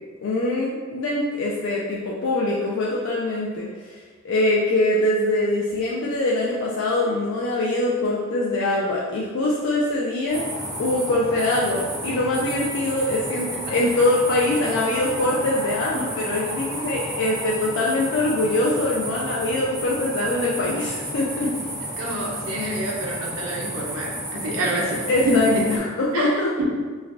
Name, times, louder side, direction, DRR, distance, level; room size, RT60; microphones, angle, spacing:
voice 1, 0.2-4.0 4.2-10.4 10.8-21.5 25.1-26.6, left 1 dB, 80° left, -5 dB, 0.4 m, -23 dB
sound 1, 10.3-25.8, right 1 dB, 10° right, 1.0 m, -32 dB
voice 2, 22.0-25.8 26.1-26.6, equal, 85° right, -3 dB, 0.5 m, -27 dB
3.2 x 2.2 x 2.4 m, 1.4 s
head